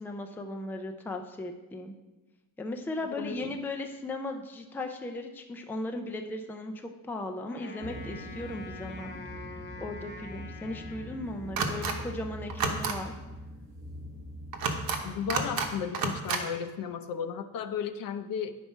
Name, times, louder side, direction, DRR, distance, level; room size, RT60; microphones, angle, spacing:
voice 1, 0.0-1.9 2.6-9.1 9.8-13.1, left 2 dB, 5° left, 4 dB, 0.4 m, -37 dB
voice 2, 3.2-3.5 15.0-18.6, left 7 dB, 65° left, 10 dB, 0.6 m, -34 dB
Wind instrument woodwind instrument, 7.5-11.9, left 4 dB, 30° left, 0.8 m, -46 dB
sound 1, 7.8-15.7, equal, 20° right, 0.9 m, -43 dB
sound 2, 11.6-11.9 12.5-12.9 14.5-15.0 15.3-15.7 15.9-16.4, right 5 dB, 70° right, 1.0 m, -29 dB
9.2 x 4.5 x 5.5 m, 1.1 s
cardioid pair, 160°, 36 cm